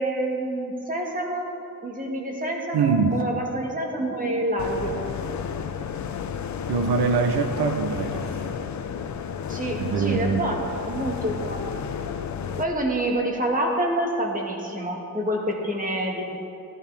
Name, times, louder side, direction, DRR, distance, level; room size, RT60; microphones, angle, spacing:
voice 1, 0.0-1.5 1.8-5.0 9.5-11.8 12.6-16.2, right 1 dB, 20° right, 0 dB, 1.6 m, -27 dB
voice 2, 2.7-3.2 6.7-8.3 9.8-10.5, right 5 dB, 90° right, 7 dB, 0.8 m, -23 dB
sound 1, 4.6-12.6, left 7 dB, 50° left, 0.6 m, -32 dB
14.5 x 13.5 x 3.4 m, 2.7 s
wide cardioid pair, 165°, 38 cm